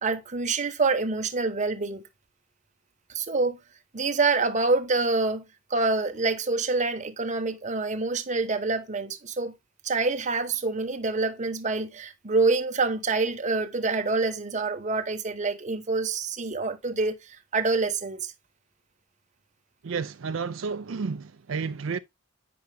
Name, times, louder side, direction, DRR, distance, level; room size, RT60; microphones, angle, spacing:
voice 1, 0.0-2.0 3.1-3.6 3.9-5.4 5.7-9.5 9.8-18.3, right 3 dB, 35° right, 1.0 m, -26 dB
voice 2, 19.8-22.0, right 5 dB, 70° right, 0.5 m, -31 dB
8.8 x 5.8 x 3.3 m
head